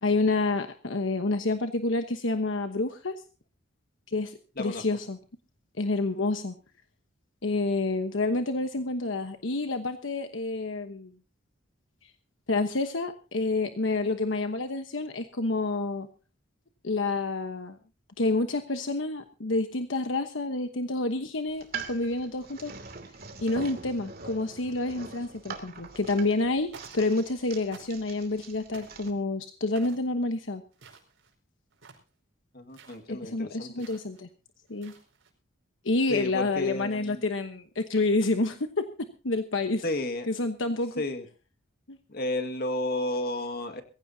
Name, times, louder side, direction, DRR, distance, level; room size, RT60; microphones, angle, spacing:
voice 1, 0.0-3.1 4.1-5.2 5.8-6.6 7.4-11.1 12.5-16.1 16.8-17.8 18.2-22.7 23.4-30.6 33.1-34.3 34.7-34.9 35.8-38.9 39.2-39.8 40.3-41.0 41.9-42.0, left 2 dB, 75° left, 7 dB, 1.1 m, -28 dB
sound 1, 21.5-29.1, right 5 dB, 50° right, 2.6 m, -43 dB
sound 2, 26.1-26.4 26.7-27.4 27.7-28.2 28.7-29.1 29.8-30.1 30.7-31.4 31.7-32.1 32.7-33.0 33.8-34.2 34.7-35.3, right 4 dB, 90° right, 4.9 m, -51 dB
voice 2, 32.5-33.7 36.1-37.2 39.8-40.3 41.0-41.2 42.1-43.8, left 1 dB, 50° left, 7 dB, 2.0 m, -32 dB
22.0 x 15.5 x 2.8 m, 0.34 s
head